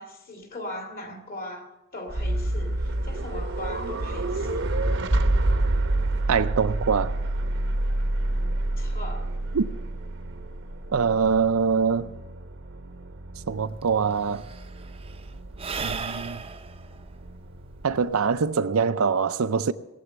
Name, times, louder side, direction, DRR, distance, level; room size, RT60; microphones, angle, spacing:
voice 1, 0.0-4.7 8.8-9.3 15.7-16.0, left 1 dB, 45° left, 2.4 m, -39 dB
sound 1, 2.1-18.0, right 2 dB, 60° right, 0.9 m, -29 dB
voice 2, 6.3-7.2 9.5-9.7 10.9-12.1 13.5-14.4 15.8-16.4 17.8-19.7, right 5 dB, 80° right, 0.6 m, -23 dB
Sigh / Breathing, 13.5-13.6 13.8-18.5, right 5 dB, 25° right, 0.6 m, -37 dB
19.5 x 7.8 x 7.1 m
head